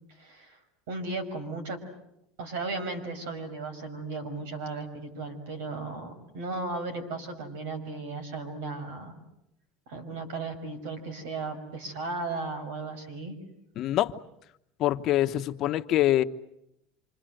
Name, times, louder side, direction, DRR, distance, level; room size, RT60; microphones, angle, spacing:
voice 1, 0.2-0.6 0.9-1.8 2.4-9.2 9.9-13.4, right 3 dB, 85° right, 9 dB, 5.8 m, -35 dB
voice 2, 13.8-14.1 14.8-16.2, left 14 dB, 50° left, 7 dB, 1.0 m, -24 dB
27.0 x 26.0 x 7.8 m, 0.80 s
supercardioid pair, 115°, 0 cm